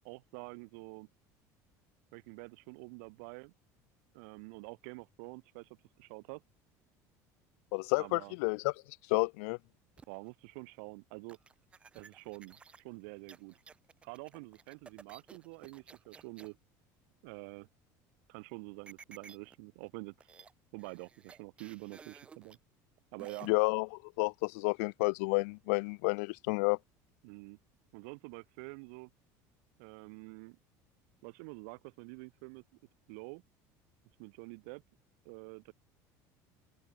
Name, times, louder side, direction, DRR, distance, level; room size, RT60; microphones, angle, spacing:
voice 1, 0.0-1.1 2.1-3.5 4.1-6.4 8.0-8.3 10.1-11.4 11.9-13.6 14.0-16.6 17.2-17.7 18.3-20.3 20.7-22.6 23.1-23.5 27.2-27.6 27.9-29.1 29.8-30.6 31.2-32.6 33.1-33.4 34.2-34.8 35.2-35.7, right 34 dB, 75° right, 0.6 m, -47 dB
voice 2, 7.7-8.7 9.1-9.6 23.4-23.9 24.2-26.8, left 31 dB, 80° left, 0.4 m, -30 dB
sound 1, 10.0-10.3 11.3-16.5 18.9-19.5 19.9-20.0 20.2-20.5 20.8-22.6 23.2-23.5, right 5 dB, 15° right, 0.6 m, -55 dB
open air
cardioid pair, 180°, 8 cm